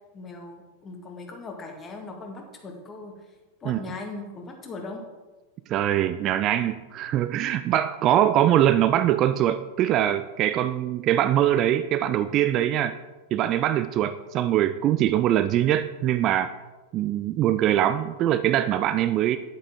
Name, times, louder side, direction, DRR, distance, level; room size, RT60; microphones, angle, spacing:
voice 1, 0.1-3.1 3.6-5.0, left 3 dB, 25° left, 2 dB, 1.7 m, -39 dB
voice 2, 5.7-13.0 13.3-16.5 16.9-19.4, right 11 dB, 35° right, 12 dB, 0.3 m, -23 dB
9.8 x 8.5 x 3.7 m, 1.2 s
figure-of-eight pair, 90°, 0 cm